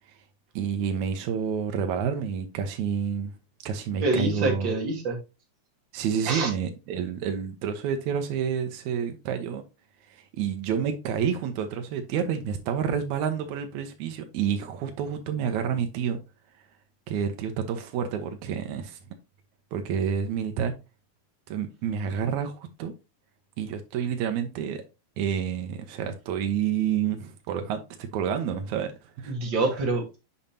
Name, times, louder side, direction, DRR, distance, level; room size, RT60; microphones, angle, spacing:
voice 1, 0.6-3.3 3.6-4.8 5.9-9.6 10.1-16.2 17.1-19.0 19.7-20.7 21.5-22.9 23.6-24.8 25.2-28.9 29.2-29.4, right 7 dB, 80° right, 2.1 m, -29 dB
voice 2, 4.0-5.2 6.3-6.5 29.3-30.2, right 3 dB, 45° right, 2.2 m, -26 dB
7.2 x 5.2 x 2.8 m
omnidirectional pair, 3.4 m